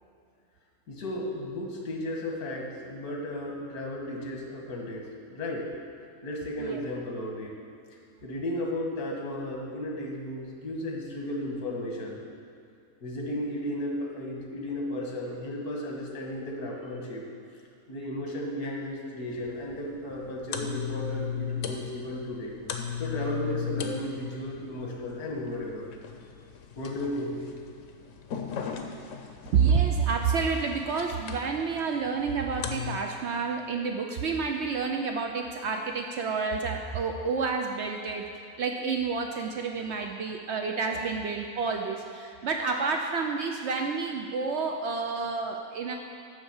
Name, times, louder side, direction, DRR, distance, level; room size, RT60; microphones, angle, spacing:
voice 1, 0.9-5.7 6.2-7.6 8.2-12.2 13.0-17.2 17.9-22.5 23.0-25.9 26.8-27.4, left 1 dB, 90° left, -1 dB, 1.8 m, -34 dB
sound 1, 19.3-33.0, left 7 dB, 65° left, 1.0 m, -38 dB
voice 2, 29.5-38.3 38.6-46.0, right 5 dB, 65° right, 3 dB, 0.7 m, -29 dB
10.5 x 3.5 x 7.0 m, 2.5 s
omnidirectional pair, 1.6 m